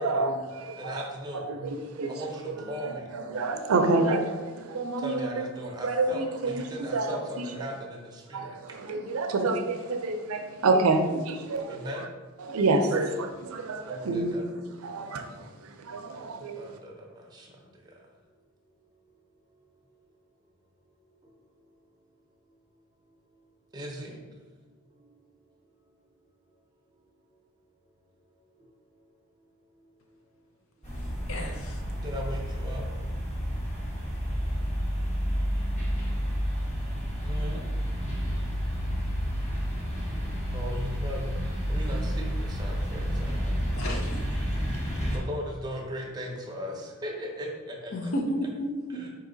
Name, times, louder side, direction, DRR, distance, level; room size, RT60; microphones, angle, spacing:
voice 1, 0.0-1.0 1.3-2.1 2.8-5.4 5.8-6.6 6.9-7.4 8.3-11.9 12.5-14.4 14.8-16.8, right 3 dB, 85° right, 0.5 m, -28 dB
voice 2, 0.8-1.4 2.1-3.0 5.0-8.5 11.7-12.0 13.9-14.4 16.6-16.9 17.3-17.5 23.7-24.2 32.0-32.8 37.2-37.7 40.5-41.3 41.7-43.5 45.1-48.1 48.9-49.1, equal, 20° right, 0.6 m, -37 dB
sound 1, 30.8-45.2, equal, 35° left, 1.2 m, -30 dB
voice 3, 31.3-31.8 43.7-44.2 47.9-49.0, equal, 75° left, 0.7 m, -32 dB
4.7 x 2.8 x 3.8 m
head